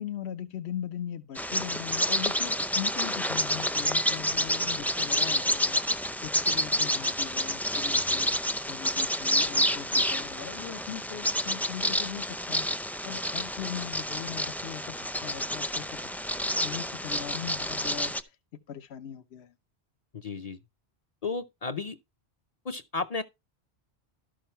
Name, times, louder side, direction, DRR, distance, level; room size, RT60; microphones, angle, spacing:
voice 1, 0.0-18.4 18.7-19.5, left 10 dB, 75° left, 1.0 m, -40 dB
Bird vocalization bird call bird song, 1.3-18.2, equal, ahead, 0.4 m, -29 dB
voice 2, 20.2-20.6 21.2-21.9 22.7-23.2, left 4 dB, 45° left, 0.6 m, -33 dB
12.5 x 6.3 x 4.3 m
omnidirectional pair, 1.1 m